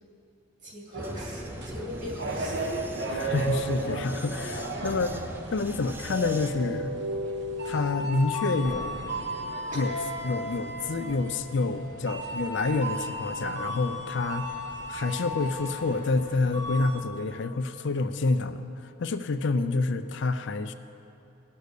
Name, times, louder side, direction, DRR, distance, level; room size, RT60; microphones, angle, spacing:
voice 1, 0.6-2.7 9.7-9.8, left 1 dB, 35° right, -3 dB, 2.8 m, -40 dB
sound 1, 0.9-17.0, right 1 dB, 55° right, 1.1 m, -34 dB
Vehicle, 1.0-6.5, right 1 dB, 10° right, 0.4 m, -40 dB
voice 2, 3.1-5.2 5.5-7.0 7.6-9.0 9.7-10.0 10.2-14.5 14.9-20.7, left 3 dB, 55° left, 9 dB, 0.4 m, -28 dB
sound 2, 8.6-10.5, left 1 dB, 80° left, 1.2 m, -44 dB
18.5 x 6.7 x 6.6 m, 2.7 s
head